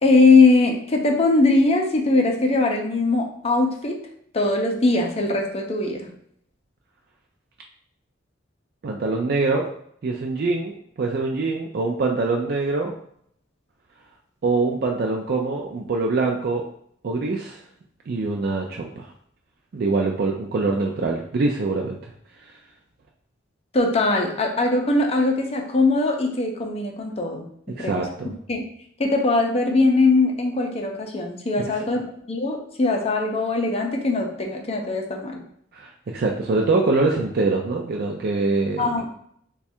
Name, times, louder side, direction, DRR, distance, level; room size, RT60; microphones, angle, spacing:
voice 1, 0.0-4.1 4.3-6.1 23.7-27.5 27.8-28.1 28.5-28.6 29.0-35.4 38.8-39.1, left 3 dB, 30° left, 2 dB, 0.6 m, -21 dB
voice 2, 8.8-9.7 10.0-12.9 14.4-16.6 17.0-17.6 18.1-19.1 19.7-22.1 22.4-22.5 27.8-28.3 35.7-38.9, right 3 dB, 55° right, 0 dB, 0.4 m, -24 dB
3.2 x 2.3 x 4.3 m, 0.67 s
head